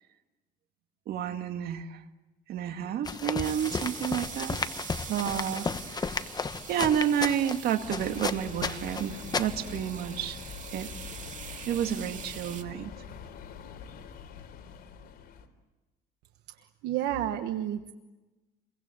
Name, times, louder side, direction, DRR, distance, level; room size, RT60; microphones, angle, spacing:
voice 1, 1.1-2.0 2.5-4.6 5.1-6.1 6.7-10.4 10.7-10.9 11.7-12.9, right 9 dB, 65° right, 7 dB, 2.2 m, -30 dB
sound 1, 3.0-9.8, left 4 dB, 25° left, 1.2 m, -34 dB
sound 2, 3.4-12.6, right 7 dB, 50° right, 2.4 m, -44 dB
sound 3, 7.8-15.5, left 7 dB, 65° left, 3.9 m, -44 dB
voice 2, 16.8-17.9, right 11 dB, 85° right, 7 dB, 1.3 m, -30 dB
30.0 x 23.0 x 7.9 m, 1.1 s
cardioid pair, 110°, 17 cm